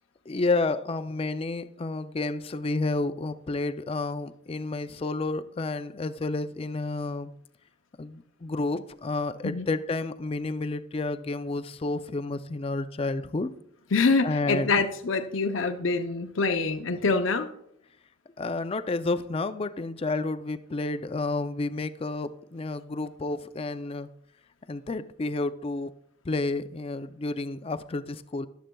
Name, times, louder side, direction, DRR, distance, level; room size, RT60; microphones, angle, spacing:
voice 1, 0.3-7.3 8.0-13.5 14.2-14.8 18.4-24.1 24.7-25.9 26.2-28.5, left 3 dB, 30° left, 0.4 m, -30 dB
voice 2, 13.9-17.5, left 4 dB, 85° left, 0.7 m, -25 dB
14.0 x 11.5 x 2.3 m
head